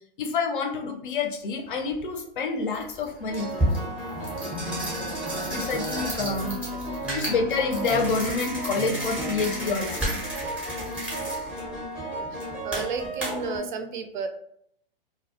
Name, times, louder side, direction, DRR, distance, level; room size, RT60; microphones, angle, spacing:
voice 1, 0.2-3.5 5.5-6.6 7.1-10.2 13.3-13.4, left 4 dB, 60° left, 3 dB, 0.6 m, -28 dB
sound 1, 1.9-2.0 2.7-13.6, right 1 dB, 5° right, 0.5 m, -31 dB
voice 2, 6.2-6.6 6.9-7.2 12.1-14.3, right 5 dB, 55° right, 7 dB, 0.4 m, -34 dB
2.2 x 2.0 x 2.8 m, 0.69 s
hypercardioid pair, 120°, 29 cm